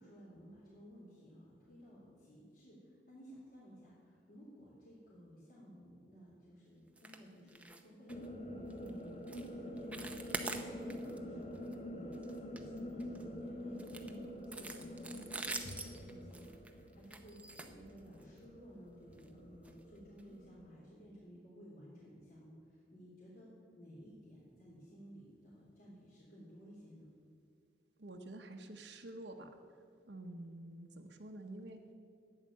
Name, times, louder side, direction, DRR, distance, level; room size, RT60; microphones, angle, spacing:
voice 1, 0.0-27.1, equal, 50° left, -8 dB, 3.4 m, -56 dB
sound 1, 7.0-7.2 7.5-7.8 8.1-8.3 8.7-8.9 9.3-9.5 9.8-11.2 11.5-11.7 12.1-13.2 13.8-18.4 19.1-19.3 19.6-19.7 20.2-20.3, right 2 dB, 10° right, 0.7 m, -45 dB
sound 2, 8.1-20.8, equal, 35° left, 1.1 m, -47 dB
voice 2, 28.0-29.5 30.1-31.8, right 1 dB, 70° right, 3 dB, 1.0 m, -48 dB
13.0 x 9.4 x 7.3 m, 2.3 s
head